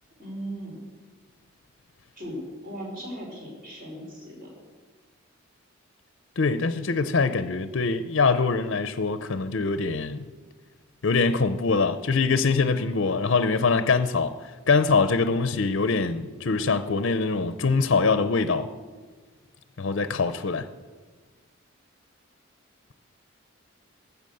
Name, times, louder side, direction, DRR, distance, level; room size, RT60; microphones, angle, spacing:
voice 1, 0.2-0.8 2.2-4.5, equal, 45° right, 4.5 m, -37 dB
voice 2, 6.4-10.2 11.0-14.3 14.7-18.7 19.8-20.7, left 4 dB, 60° left, 0.5 m, -23 dB
14.0 x 7.0 x 7.7 m
head